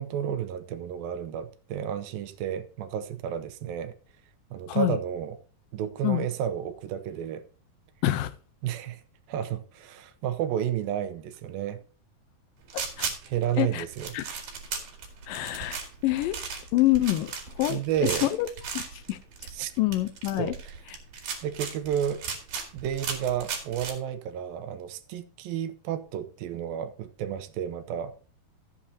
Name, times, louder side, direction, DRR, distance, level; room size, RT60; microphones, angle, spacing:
voice 1, 0.0-4.0 4.5-5.4 5.7-7.4 8.6-9.0 9.3-11.8 13.2-14.2 17.7-18.3 19.5-19.7 20.4-20.8 21.4-22.2 22.7-28.3, right 9 dB, 80° right, 2.7 m, -31 dB
voice 2, 4.7-5.0 6.0-6.3 8.0-8.3 12.7-13.1 13.6-13.8 14.1-14.3 15.3-16.4 16.7-17.8 18.2-18.5 18.7-18.8 19.1-19.2 19.8-20.5, left 16 dB, 80° left, 2.3 m, -26 dB
sound 1, 12.7-23.9, right 6 dB, 65° right, 3.5 m, -36 dB
14.5 x 8.7 x 2.8 m
omnidirectional pair, 4.1 m